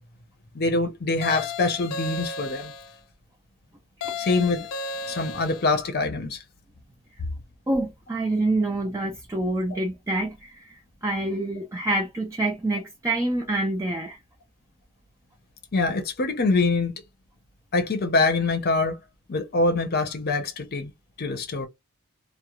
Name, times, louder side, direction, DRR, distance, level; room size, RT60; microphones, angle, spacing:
voice 1, 0.5-2.7 4.2-4.7 5.1-6.4 15.7-16.9 17.7-19.0 19.3-20.9 21.2-21.7, left 3 dB, 45° left, 0.7 m, -24 dB
sound 1, 1.2-3.0 4.0-5.8, left 4 dB, 85° left, 0.5 m, -34 dB
voice 2, 7.7-14.2, right 2 dB, 15° right, 0.4 m, -27 dB
2.4 x 2.1 x 2.9 m
head